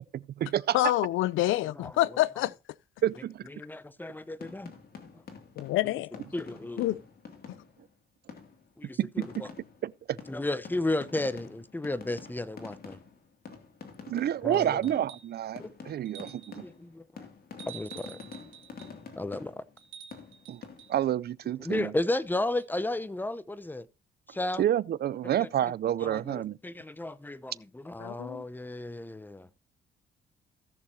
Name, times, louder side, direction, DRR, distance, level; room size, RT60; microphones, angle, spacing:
voice 1, 0.1-0.9 3.0-3.5 9.0-9.4 9.8-10.2 14.1-16.7 20.5-20.6 20.9-21.9 24.6-26.6, right 11 dB, 55° right, 0.5 m, -29 dB
voice 2, 0.7-2.5 5.6-6.2 6.8-7.0 28.0-28.4, left 16 dB, 85° left, 0.5 m, -27 dB
voice 3, 3.5-4.7 6.3-6.9 8.8-9.5 10.3-13.0 14.4-14.8 15.6-15.7 16.6-17.3 17.7-18.2 19.2-19.5 21.6-23.9 24.3-24.6 25.4-25.5 26.0-29.5, left 2 dB, 10° left, 0.8 m, -33 dB
sound 1, 4.2-7.9 8.3-8.7 9.2-15.3 15.6-19.8 20.1-21.1, left 5 dB, 50° left, 2.4 m, -48 dB
sound 2, 14.8-15.4 16.0-16.7 17.6-19.0 19.8-21.0 22.6-22.7, right 9 dB, 90° right, 2.7 m, -49 dB
17.0 x 6.5 x 2.8 m
cardioid pair, 90°, 20 cm